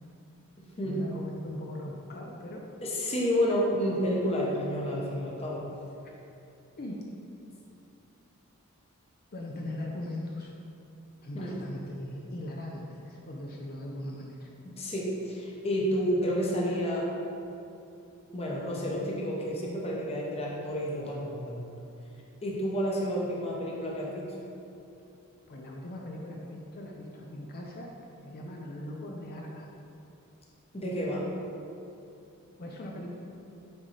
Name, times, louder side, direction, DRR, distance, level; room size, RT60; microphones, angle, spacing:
voice 1, 0.8-2.6 6.8-7.0 9.3-10.5 11.2-14.5 25.5-27.9 28.2-29.7 32.6-33.1, left 1 dB, 45° left, -1 dB, 0.5 m, -39 dB
voice 2, 2.8-5.6 11.3-11.5 14.6-17.1 18.3-21.7 22.4-24.2 30.7-31.2, equal, 25° left, -4 dB, 0.9 m, -30 dB
9.5 x 3.8 x 3.3 m, 2.7 s
head